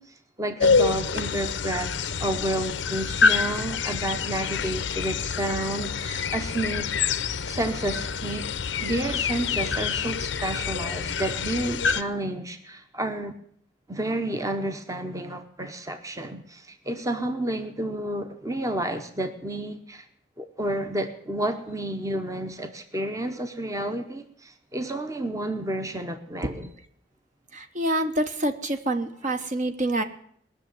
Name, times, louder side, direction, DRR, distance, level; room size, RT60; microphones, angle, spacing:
voice 1, 0.0-6.9 7.5-8.5 8.8-13.3 13.9-20.1 20.4-26.7, right 1 dB, 20° right, 7 dB, 0.9 m, -30 dB
sound 1, 0.6-12.0, left 5 dB, 80° left, 0.7 m, -27 dB
voice 2, 27.5-30.0, right 1 dB, 45° right, 7 dB, 1.1 m, -26 dB
20.0 x 6.7 x 9.4 m, 0.64 s
head